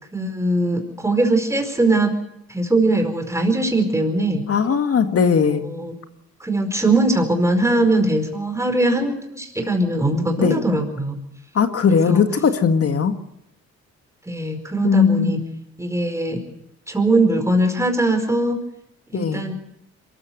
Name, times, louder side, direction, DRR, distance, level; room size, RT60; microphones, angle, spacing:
voice 1, 0.1-2.1 2.5-4.4 5.5-5.9 6.4-11.2 11.8-12.2 14.3-15.4 15.8-16.4 16.9-18.6 19.1-19.5, right 2 dB, 10° right, 5 dB, 4.9 m, -21 dB
voice 2, 4.5-5.7 10.4-10.6 11.5-13.1 14.8-15.5 19.1-19.4, left 6 dB, 50° left, 8 dB, 1.9 m, -18 dB
23.5 x 14.5 x 7.9 m, 0.79 s
cardioid pair, 90°, 30 cm